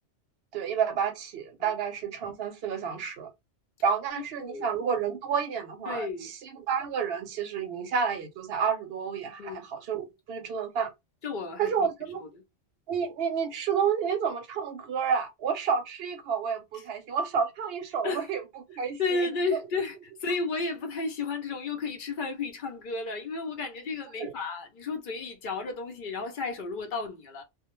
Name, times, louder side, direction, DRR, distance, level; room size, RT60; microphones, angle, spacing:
voice 1, 0.5-3.3 3.8-10.9 11.6-12.2 12.9-19.3 24.2-24.3, right 6 dB, 65° right, 0.7 m, -30 dB
voice 2, 4.4-4.7 5.9-6.3 9.4-9.6 11.2-11.9 12.3-12.4 18.0-18.3 19.0-27.4, left 4 dB, 55° left, 0.6 m, -33 dB
2.2 x 2.1 x 2.9 m
omnidirectional pair, 1.2 m